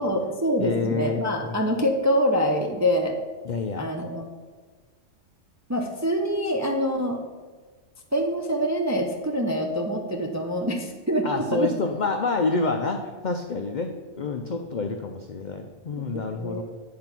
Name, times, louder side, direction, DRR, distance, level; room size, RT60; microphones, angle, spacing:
voice 1, 0.0-3.2 3.8-4.3 5.7-7.2 8.1-11.3 11.5-11.7 16.1-16.6, equal, 25° right, 1 dB, 0.3 m, -25 dB
voice 2, 0.6-1.6 3.4-3.9 11.2-16.6, left 3 dB, 70° left, 4 dB, 0.4 m, -28 dB
8.8 x 3.8 x 5.9 m, 1.4 s
omnidirectional pair, 1.4 m